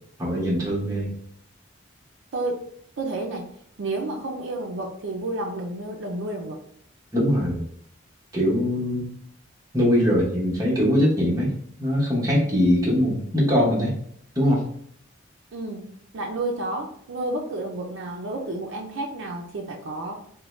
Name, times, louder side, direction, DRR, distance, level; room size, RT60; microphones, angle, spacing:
voice 1, 0.2-1.1 7.1-7.6 8.3-9.1 9.7-11.5 11.8-13.9 14.4-14.6, equal, 15° right, -5 dB, 0.8 m, -22 dB
voice 2, 2.3-2.6 3.0-3.5 3.8-6.6 15.5-20.2, right 2 dB, 65° right, 0 dB, 0.4 m, -31 dB
2.6 x 2.1 x 3.1 m, 0.66 s
head